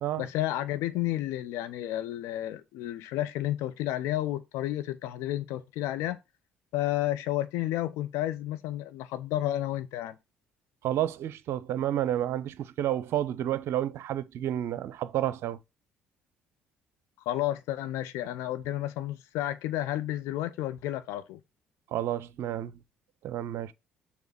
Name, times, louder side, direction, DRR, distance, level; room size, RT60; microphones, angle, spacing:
voice 1, 0.2-6.2 6.7-10.2 17.3-21.4, left 14 dB, 65° left, 0.8 m, -31 dB
voice 2, 10.8-15.6 21.9-22.7 23.2-23.7, right 12 dB, 55° right, 0.6 m, -30 dB
7.1 x 3.6 x 5.9 m
figure-of-eight pair, 50°, 5 cm